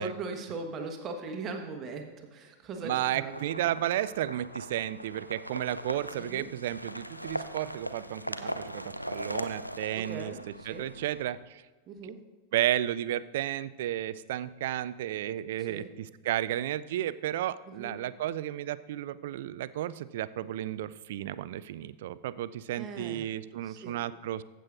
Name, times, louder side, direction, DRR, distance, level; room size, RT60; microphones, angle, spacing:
voice 1, 0.0-3.3 6.2-6.4 9.9-10.9 11.9-12.2 15.7-15.9 17.7-17.9 22.8-23.3 23.6-24.0, right 3 dB, 30° right, 3 dB, 1.3 m, -39 dB
voice 2, 2.8-10.3 10.7-11.6 12.0-12.1 12.5-24.4, right 12 dB, 55° right, 17 dB, 0.3 m, -33 dB
sound 1, 3.2-11.2, equal, 90° left, 0.4 m, -39 dB
15.0 x 7.5 x 2.6 m, 1.3 s
figure-of-eight pair, 90°, 0 cm